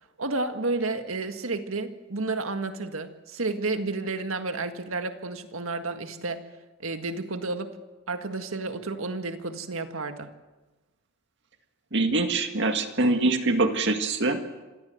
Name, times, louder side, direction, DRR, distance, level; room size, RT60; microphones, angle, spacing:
voice 1, 0.2-6.4 6.8-7.7 8.1-10.4, right 3 dB, 85° right, 7 dB, 1.8 m, -31 dB
voice 2, 11.9-14.4, right 2 dB, 60° right, 6 dB, 2.0 m, -24 dB
26.0 x 17.5 x 8.0 m, 1.2 s
head